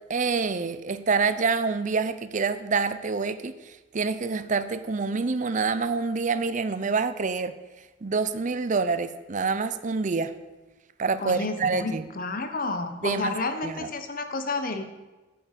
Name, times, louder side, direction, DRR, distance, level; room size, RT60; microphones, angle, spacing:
voice 1, 0.1-7.5 8.0-10.3 11.0-12.0 13.0-13.3 13.6-13.9, right 4 dB, 40° right, 12 dB, 0.6 m, -27 dB
voice 2, 11.2-14.8, left 3 dB, 45° left, 8 dB, 1.1 m, -30 dB
9.1 x 7.7 x 8.2 m, 1.1 s
head